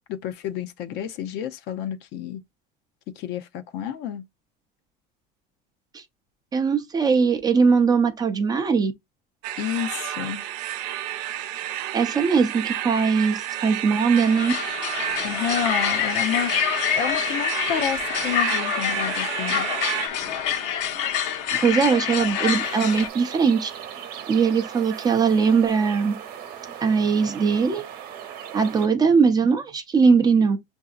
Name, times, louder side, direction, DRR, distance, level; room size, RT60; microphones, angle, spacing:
voice 1, 0.1-2.4 3.2-4.2 9.6-10.4 15.2-19.7, left 9 dB, 55° left, 0.6 m, -30 dB
voice 2, 6.5-8.9 11.9-14.5 21.6-23.7 24.3-26.2 26.8-27.8 28.5-30.6, right 5 dB, 20° right, 0.5 m, -20 dB
sound 1, 9.4-20.1, right 12 dB, 80° right, 0.7 m, -31 dB
sound 2, 14.1-23.1, left 8 dB, 70° left, 1.1 m, -26 dB
sound 3, 22.6-28.9, right 9 dB, 45° right, 1.0 m, -38 dB
6.6 x 2.7 x 2.3 m
cardioid pair, 160°, 21 cm